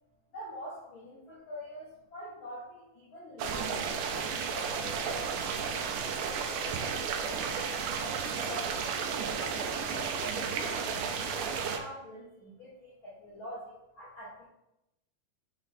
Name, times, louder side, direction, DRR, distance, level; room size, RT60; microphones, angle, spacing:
voice 1, 0.3-8.9 9.6-14.5, equal, 80° left, -7 dB, 1.1 m, -46 dB
sound 1, 3.4-11.8, right 6 dB, 80° right, 1.9 m, -33 dB
7.1 x 3.3 x 4.1 m, 0.89 s
omnidirectional pair, 4.3 m